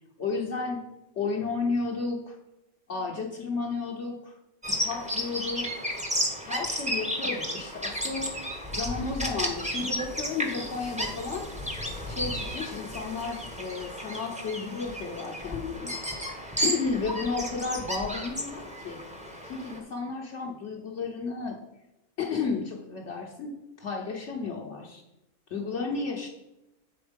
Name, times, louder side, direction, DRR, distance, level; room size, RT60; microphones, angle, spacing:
voice 1, 0.2-0.8 1.1-2.4 2.9-4.4 4.7-5.9 6.4-8.3 8.7-11.5 12.1-16.0 16.6-19.0 19.4-21.6 22.2-25.0 25.5-26.3, left 4 dB, 60° left, -2 dB, 1.1 m, -33 dB
Bird vocalization bird call bird song, 4.6-19.8, equal, 5° right, 0.9 m, -33 dB
7.9 x 4.4 x 5.1 m, 0.94 s
omnidirectional pair, 1.5 m